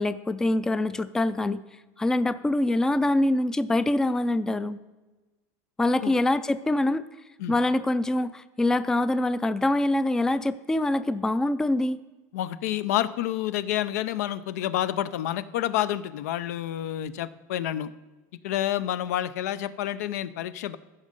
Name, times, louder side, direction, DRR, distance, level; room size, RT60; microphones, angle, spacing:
voice 1, 0.0-1.6 2.0-4.8 5.8-7.0 7.5-12.0, left 1 dB, 5° left, 14 dB, 0.3 m, -24 dB
voice 2, 12.3-17.9 18.4-20.8, left 12 dB, 85° left, 15 dB, 0.5 m, -29 dB
14.5 x 5.4 x 5.2 m, 1.2 s
supercardioid pair, 140°, 8 cm